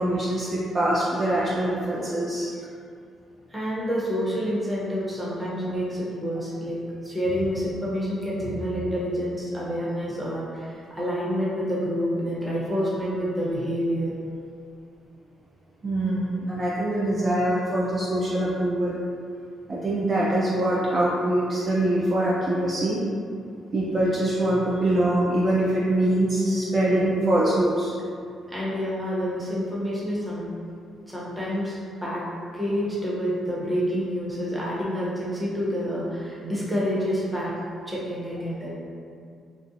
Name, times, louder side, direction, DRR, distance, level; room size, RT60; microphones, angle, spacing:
voice 1, 0.0-2.5 15.8-19.0 19.7-23.0 23.7-27.9, right 1 dB, 35° right, -7 dB, 0.4 m, -23 dB
voice 2, 3.5-14.1 28.5-30.5 31.1-32.2 32.5-37.5 37.9-38.7, equal, 10° right, -7 dB, 0.7 m, -28 dB
2.5 x 2.0 x 2.5 m, 2.3 s
cardioid pair, 90°, 0 cm